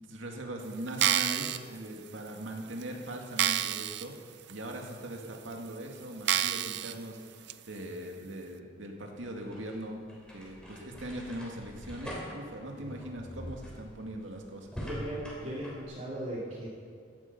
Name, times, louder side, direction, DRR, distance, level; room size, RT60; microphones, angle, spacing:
voice 1, 0.1-10.0 10.3-14.7, right 1 dB, 75° right, 1 dB, 2.2 m, -40 dB
sound 1, 0.9-1.6 2.3-2.4 2.8-2.9 3.4-4.1 4.5-4.6 5.3-5.4 6.3-6.9 7.5-7.6, right 11 dB, 60° right, 0.5 m, -28 dB
sound 2, 9.4-15.8, equal, 5° left, 3.3 m, -44 dB
voice 2, 14.9-16.7, right 1 dB, 35° right, -6 dB, 2.7 m, -37 dB
16.5 x 12.5 x 5.5 m, 2.4 s
head